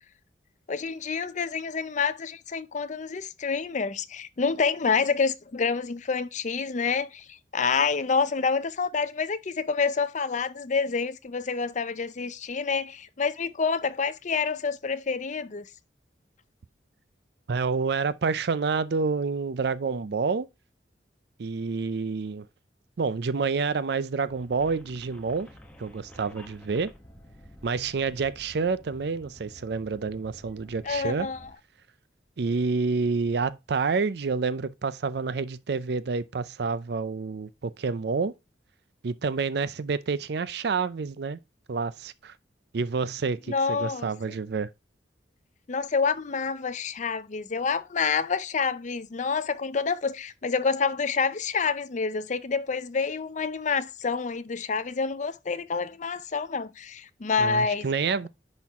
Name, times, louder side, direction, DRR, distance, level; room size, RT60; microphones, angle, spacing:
voice 1, 0.7-15.6 30.9-31.5 43.5-44.1 45.7-57.9, left 5 dB, 45° left, 0.6 m, -28 dB
voice 2, 17.5-20.5 21.4-22.5 23.0-25.5 25.8-26.9 27.6-31.3 32.4-38.3 39.0-41.4 41.7-42.3 42.7-44.7 57.4-58.3, right 4 dB, 65° right, 0.5 m, -28 dB
sound 1, 24.2-31.5, equal, 5° left, 1.1 m, -50 dB
10.0 x 4.4 x 3.5 m
head